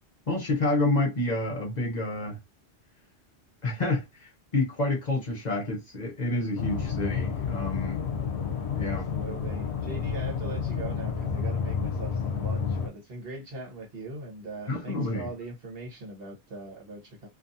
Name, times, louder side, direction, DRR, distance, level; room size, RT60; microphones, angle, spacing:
voice 1, 0.3-2.4 3.6-8.0 8.7-9.1 14.7-15.3, left 2 dB, 45° left, 0.8 m, -28 dB
sound 1, 6.6-12.9, left 6 dB, 80° left, 0.8 m, -30 dB
voice 2, 8.8-17.3, right 2 dB, 60° right, 1.2 m, -40 dB
2.6 x 2.4 x 2.6 m
omnidirectional pair, 1.1 m